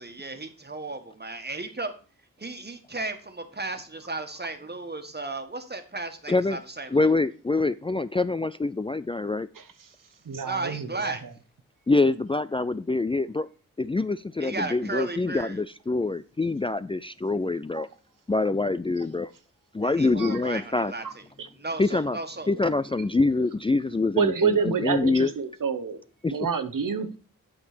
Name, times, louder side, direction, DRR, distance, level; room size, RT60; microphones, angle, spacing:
voice 1, 0.0-1.9 2.4-7.1 10.4-11.2 14.4-15.6 19.8-22.5, right 3 dB, 30° right, 1.7 m, -35 dB
voice 2, 6.9-9.5 11.9-13.5 13.8-17.9 18.3-19.3 19.7-20.9 21.8-22.2 22.5-25.3 26.2-26.3, left 3 dB, 15° left, 0.4 m, -25 dB
voice 3, 10.3-11.2 17.7-17.8 20.2-20.4 21.0-21.1 24.2-26.0 26.3-27.2, right 6 dB, 70° right, 1.0 m, -27 dB
8.5 x 5.1 x 6.2 m
cardioid pair, 50°, 34 cm